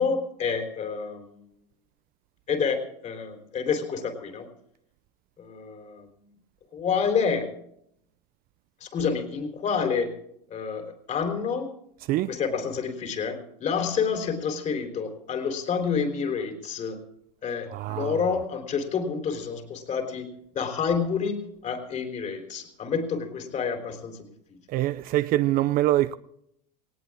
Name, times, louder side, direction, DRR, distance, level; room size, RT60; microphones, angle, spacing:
voice 1, 0.0-1.4 2.5-4.5 5.4-6.1 6.7-7.5 8.8-10.2 10.5-11.7 12.3-17.0 17.4-24.3, left 6 dB, 35° left, 3.6 m, -28 dB
voice 2, 17.7-18.2 24.7-26.1, right 15 dB, 45° right, 0.6 m, -24 dB
18.5 x 17.5 x 3.6 m
supercardioid pair, 115°, 21 cm